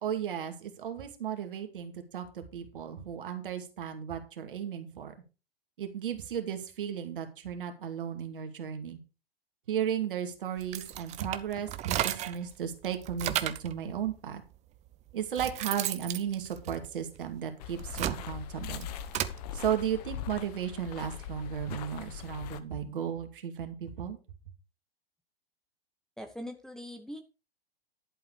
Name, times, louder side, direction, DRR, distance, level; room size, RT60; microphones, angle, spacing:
voice 1, 0.0-5.1 5.8-9.0 9.7-14.4 15.1-18.9 19.5-24.2, right 8 dB, 60° right, 6 dB, 2.3 m, -35 dB
sound 1, 10.6-12.5 12.8-13.7 14.5-14.6 15.1-17.2 17.7-19.4, right 13 dB, 20° right, 0.7 m, -34 dB
sound 2, 17.6-22.6, left 9 dB, 40° left, 1.1 m, -41 dB
voice 2, 26.2-27.2, equal, ahead, 5 dB, 1.1 m, -41 dB
11.5 x 7.8 x 4.8 m, 0.32 s
figure-of-eight pair, 100°, 31 cm